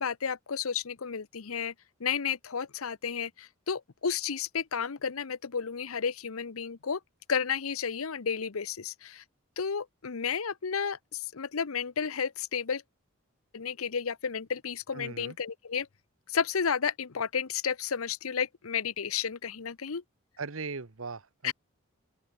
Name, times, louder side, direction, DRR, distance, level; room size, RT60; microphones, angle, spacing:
voice 1, 0.0-1.7 2.0-7.0 7.3-9.2 9.6-12.8 13.5-15.9 16.3-20.0 21.4-21.5, left 6 dB, 85° left, 0.8 m, -32 dB
voice 2, 14.9-15.4 20.4-21.5, right 4 dB, 75° right, 1.1 m, -39 dB
open air
head